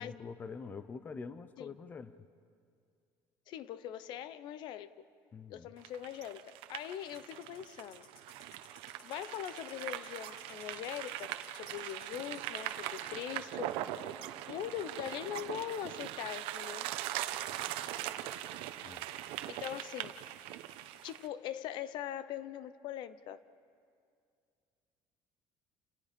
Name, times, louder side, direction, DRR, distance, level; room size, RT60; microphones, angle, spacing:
voice 1, 0.0-2.2 5.3-5.7 18.8-19.0, left 5 dB, 20° left, 13 dB, 0.6 m, -45 dB
voice 2, 3.5-4.9 5.5-8.1 9.0-13.8 14.5-16.9 19.1-20.2 21.0-23.4, left 11 dB, 55° left, 15 dB, 0.7 m, -42 dB
sound 1, 5.8-21.3, right 13 dB, 75° right, 1.0 m, -41 dB
sound 2, 7.1-12.7, left 6 dB, 85° left, 3.1 m, -60 dB
29.0 x 28.0 x 5.2 m, 2.3 s
cardioid pair, 170°, 9 cm